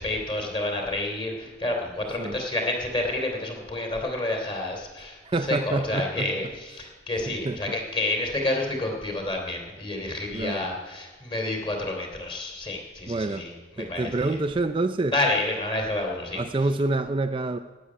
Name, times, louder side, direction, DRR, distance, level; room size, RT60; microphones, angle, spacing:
voice 1, 0.0-14.4 15.1-16.4, left 2 dB, 25° left, 1 dB, 2.8 m, -29 dB
voice 2, 5.3-6.3 7.3-7.6 10.3-10.6 13.1-13.5 13.8-15.1 16.3-17.6, right 2 dB, 25° right, 8 dB, 0.4 m, -27 dB
12.5 x 8.5 x 9.9 m, 1.3 s
head